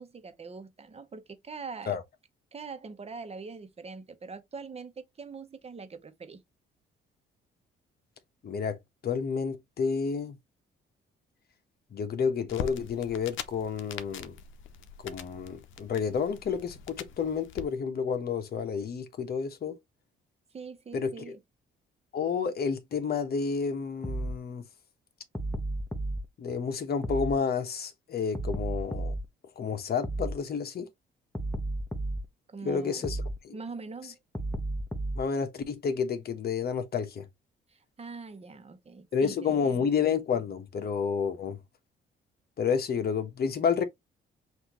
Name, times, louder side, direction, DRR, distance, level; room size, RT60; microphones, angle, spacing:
voice 1, 0.0-2.0 2.5-6.4 20.5-21.4 32.5-33.1 33.5-34.2 37.7-39.9, right 4 dB, 30° right, 1.1 m, -43 dB
voice 2, 8.4-8.8 9.0-10.4 11.9-14.3 15.0-19.8 20.9-21.3 22.1-24.6 26.4-29.1 29.6-30.9 32.6-33.2 33.4-33.6 35.1-37.3 39.1-41.6 42.6-43.8, left 6 dB, 50° left, 1.2 m, -30 dB
sound 1, 12.5-17.6, left 8 dB, 80° left, 0.7 m, -42 dB
sound 2, 24.0-24.4 25.3-26.2 27.0-27.4 28.3-29.3 30.0-30.4 31.3-32.3 33.0-33.4 34.3-35.3, right 1 dB, 10° left, 1.1 m, -32 dB
5.7 x 2.7 x 3.0 m
cardioid pair, 90°, 20 cm